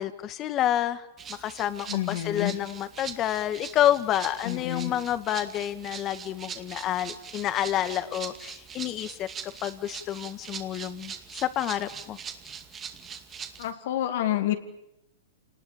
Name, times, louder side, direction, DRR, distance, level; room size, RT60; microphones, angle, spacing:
voice 1, 0.0-12.2, left 11 dB, 30° left, 11 dB, 1.8 m, -29 dB
Rattle (instrument), 1.2-13.7, right 7 dB, 25° right, 2.2 m, -42 dB
voice 2, 1.9-2.6 4.4-4.9 13.6-14.5, left 13 dB, 65° left, 7 dB, 2.6 m, -28 dB
28.0 x 19.5 x 8.8 m, 0.87 s
hypercardioid pair, 130°, 0 cm